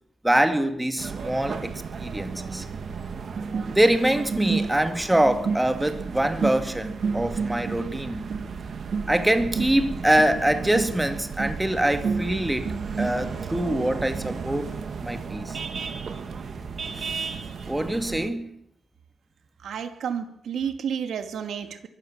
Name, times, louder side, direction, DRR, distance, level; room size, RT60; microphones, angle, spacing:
voice 1, 0.2-2.7 3.7-8.3 9.1-14.7 15.0-15.6 17.1-17.3 17.7-18.6, right 1 dB, 5° right, 2.2 m, -24 dB
sound 1, 1.0-18.3, right 5 dB, 50° right, 2.4 m, -32 dB
voice 2, 19.6-21.9, right 7 dB, 70° right, 2.5 m, -31 dB
23.0 x 15.0 x 7.4 m
cardioid pair, 130°, 0 cm